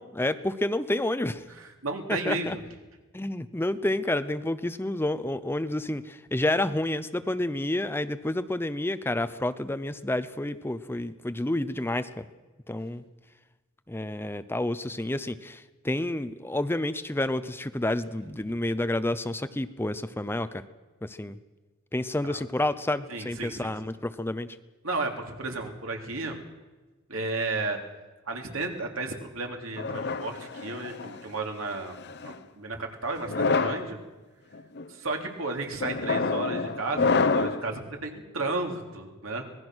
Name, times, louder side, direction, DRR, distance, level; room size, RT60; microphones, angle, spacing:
voice 1, 0.1-1.4 2.1-2.6 3.1-12.2 12.7-13.0 13.9-20.6 21.0-21.3 21.9-24.5, left 1 dB, 10° left, 12 dB, 0.6 m, -29 dB
voice 2, 1.6-2.6 22.2-22.4 23.1-23.7 24.8-26.4 27.1-27.8 28.3-32.0 32.2-34.0 34.9-39.4, right 3 dB, 70° right, 3 dB, 3.1 m, -33 dB
sound 1, 29.8-31.2 32.0-32.4 33.2-33.9 34.5-34.8 35.8-37.7, left 4 dB, 55° left, 1.0 m, -27 dB
25.5 x 19.5 x 6.2 m, 1.2 s
head